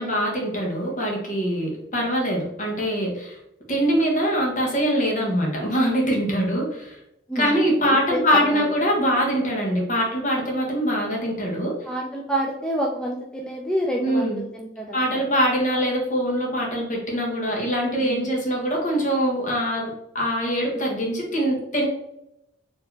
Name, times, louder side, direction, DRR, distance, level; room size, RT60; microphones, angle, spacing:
voice 1, 0.0-3.4 3.7-7.0 7.3-11.7 14.0-14.4 14.9-19.9 20.1-21.9, equal, 45° left, -1 dB, 1.3 m, -23 dB
voice 2, 7.3-8.7 11.8-15.2 17.9-18.3, equal, 5° left, -1 dB, 0.4 m, -29 dB
4.6 x 3.1 x 3.3 m, 0.84 s
head